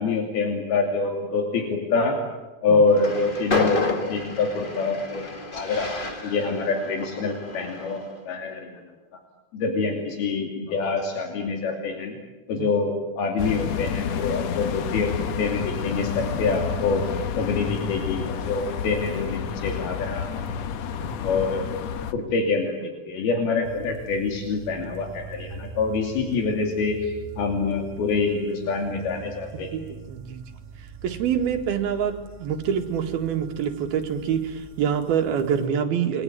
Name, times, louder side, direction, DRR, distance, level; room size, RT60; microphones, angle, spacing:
voice 1, 0.0-2.2 2.6-3.8 4.1-5.9 6.2-8.8 9.5-12.2 12.5-17.1 17.4-20.3 21.2-21.7 22.1-29.7, left 4 dB, 85° left, 3 dB, 4.6 m, -26 dB
Train, 2.9-8.2, left 3 dB, 35° left, 0.8 m, -30 dB
sound 1, 13.4-22.1, left 7 dB, 60° left, 1.8 m, -30 dB
voice 2, 21.0-21.4 29.7-29.8 30.1-30.4 31.0-36.2, right 8 dB, 85° right, 4 dB, 4.0 m, -26 dB
sound 2, 23.6-35.7, right 4 dB, 55° right, 3.1 m, -43 dB
28.5 x 22.5 x 9.2 m, 1.2 s
omnidirectional pair, 4.3 m